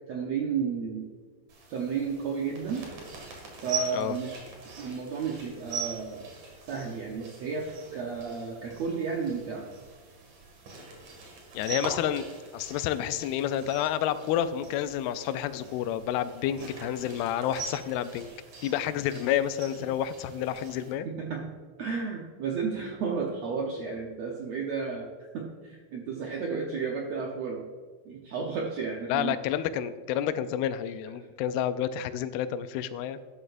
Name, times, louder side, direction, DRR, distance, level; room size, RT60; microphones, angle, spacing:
voice 1, 0.1-1.1 1.7-2.9 3.6-6.3 6.7-9.7 21.0-21.4 21.8-25.1 25.3-27.6 28.0-29.4, right 5 dB, 75° right, -1 dB, 1.5 m, -32 dB
sound 1, 1.5-20.9, right 4 dB, 55° right, 3.2 m, -43 dB
voice 2, 11.5-12.3 12.5-18.3 18.6-21.1 29.1-33.2, left 10 dB, 90° left, 12 dB, 2.5 m, -29 dB
12.0 x 12.0 x 2.6 m, 1.5 s
omnidirectional pair, 4.4 m